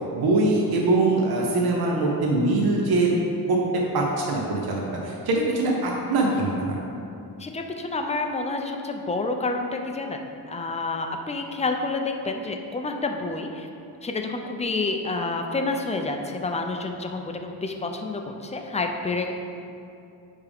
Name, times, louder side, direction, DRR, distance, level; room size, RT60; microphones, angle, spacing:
voice 1, 0.1-3.1 3.5-3.6 3.9-6.8, right 2 dB, 65° right, -1 dB, 0.9 m, -23 dB
voice 2, 7.4-10.2 10.5-13.7 14.0-19.3, left 3 dB, 20° left, 4 dB, 0.3 m, -29 dB
10.0 x 3.5 x 3.5 m, 2.6 s
wide cardioid pair, 155°, 39 cm